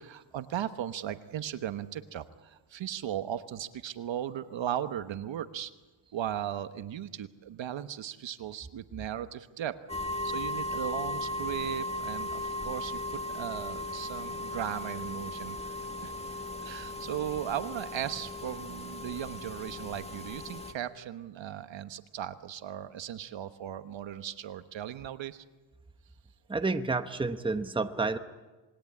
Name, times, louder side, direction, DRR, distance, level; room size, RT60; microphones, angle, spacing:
voice 1, 0.0-5.7 6.1-9.8 10.2-15.7 16.0-16.1 16.6-25.4, right 10 dB, 65° right, 11 dB, 1.2 m, -37 dB
sound 1, 9.9-20.7, left 1 dB, 15° left, 1.7 m, -37 dB
voice 2, 26.5-28.2, right 3 dB, 10° right, 8 dB, 1.0 m, -30 dB
27.5 x 21.0 x 8.6 m, 1.2 s
wide cardioid pair, 135°, 48 cm